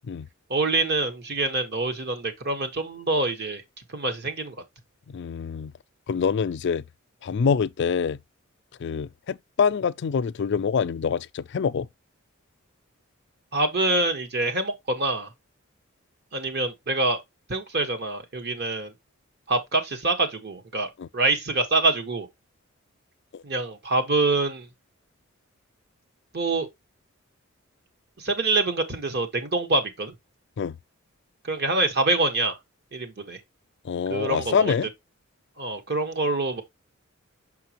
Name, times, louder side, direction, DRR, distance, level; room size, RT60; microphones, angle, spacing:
voice 1, 0.5-3.6 3.9-4.5 13.5-15.3 16.3-17.2 17.5-18.9 19.5-22.3 23.4-24.7 26.3-26.7 28.2-30.1 31.5-32.6 32.9-33.4 34.1-34.7 35.6-36.6, right 2 dB, 50° right, 1.4 m, -25 dB
voice 2, 5.1-5.7 6.1-6.8 7.2-8.2 8.8-11.9 21.0-21.1 23.3-23.4 30.6-30.8 33.8-34.9, left 6 dB, 60° left, 0.4 m, -25 dB
6.1 x 5.7 x 3.0 m
head